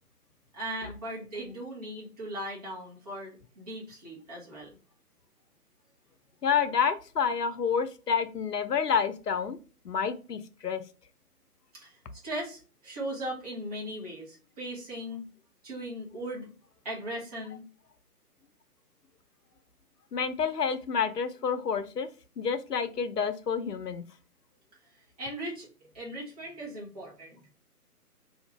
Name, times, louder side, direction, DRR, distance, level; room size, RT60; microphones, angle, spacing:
voice 1, 0.5-4.7 11.8-12.0 12.2-15.3 15.6-16.5 16.8-17.6 25.2-25.7 25.9-27.4, right 1 dB, 25° right, -4 dB, 1.0 m, -38 dB
voice 2, 6.4-9.6 9.8-10.8 20.1-22.1 22.4-24.0, left 6 dB, 80° left, 11 dB, 0.6 m, -29 dB
2.9 x 2.5 x 3.3 m, 0.35 s
figure-of-eight pair, 145°, 47 cm